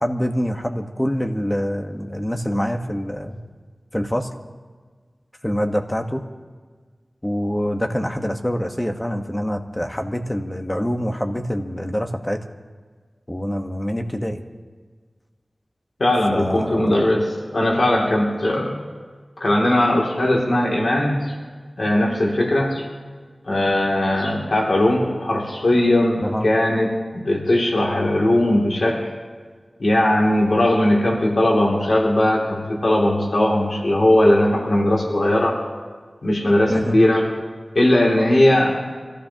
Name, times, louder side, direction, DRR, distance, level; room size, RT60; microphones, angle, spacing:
voice 1, 0.0-3.4 3.9-4.3 5.4-6.3 7.2-12.4 13.3-14.4 16.3-17.1 26.2-26.5 36.7-37.0, equal, 15° left, 4 dB, 1.3 m, -25 dB
voice 2, 16.0-18.7 19.4-21.2 21.8-22.8 23.5-29.1 29.8-35.6 36.2-37.2 37.7-38.7, left 1 dB, 70° left, -2 dB, 2.7 m, -19 dB
25.0 x 15.0 x 3.0 m, 1.5 s
wide cardioid pair, 65°, 0 cm